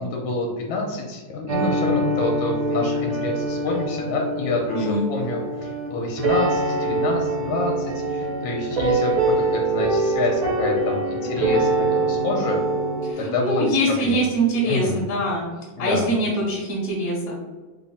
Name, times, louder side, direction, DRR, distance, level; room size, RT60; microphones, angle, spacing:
voice 1, 0.0-12.6 13.2-14.2 14.7-15.0 15.8-16.1, left 2 dB, 85° left, 0 dB, 1.4 m, -27 dB
sound 1, 1.5-13.1, right 2 dB, 75° right, 1.6 m, -24 dB
voice 2, 4.7-5.1 13.1-15.4 15.8-17.4, right 1 dB, 55° left, -3 dB, 0.8 m, -23 dB
3.6 x 2.0 x 3.9 m, 1.3 s
omnidirectional pair, 2.2 m